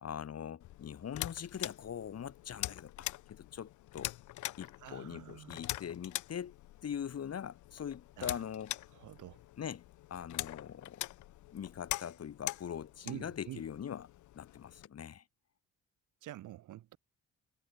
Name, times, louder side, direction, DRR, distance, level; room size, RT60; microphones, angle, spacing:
voice 1, 0.0-4.1 4.6-6.6 6.8-8.7 9.6-9.8 10.1-11.1 11.5-14.1 14.3-15.2, left 8 dB, 55° left, 4.3 m, -42 dB
sound 1, 0.6-14.9, left 16 dB, 75° left, 0.7 m, -44 dB
voice 2, 4.8-5.6 8.2-8.4 8.9-9.4 13.0-13.6 16.2-17.0, right 14 dB, 80° right, 4.7 m, -47 dB
cardioid pair, 90°, 30 cm